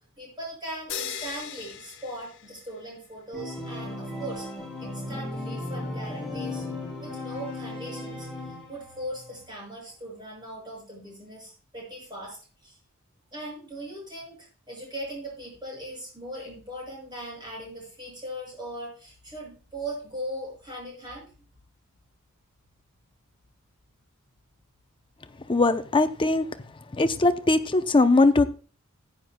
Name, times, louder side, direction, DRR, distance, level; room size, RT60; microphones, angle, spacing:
voice 1, 0.2-4.5 4.8-6.6 7.0-8.3 8.7-12.8 13.3-21.3, right 1 dB, 20° right, -2 dB, 6.0 m, -39 dB
sound 1, 0.9-3.0, left 8 dB, 60° left, 0.9 m, -38 dB
Organ, 3.3-9.1, left 2 dB, ahead, 5.3 m, -35 dB
voice 2, 25.5-26.4 26.9-28.4, left 2 dB, 25° left, 9 dB, 0.6 m, -20 dB
15.0 x 9.6 x 2.2 m, 0.36 s
head